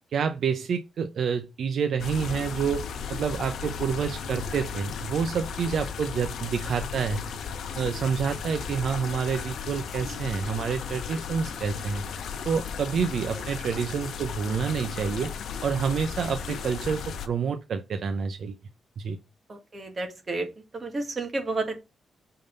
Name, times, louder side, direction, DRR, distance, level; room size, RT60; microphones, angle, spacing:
voice 1, 0.1-2.8 3.1-7.2 7.8-12.0 12.4-15.3 15.6-18.6 19.0-19.2, right 6 dB, 65° right, 0.6 m, -28 dB
sound 1, 2.0-17.3, left 6 dB, 80° left, 0.8 m, -35 dB
voice 2, 19.5-21.8, right 2 dB, 35° right, 1.9 m, -32 dB
6.6 x 3.9 x 5.2 m
cardioid pair, 125°, 0 cm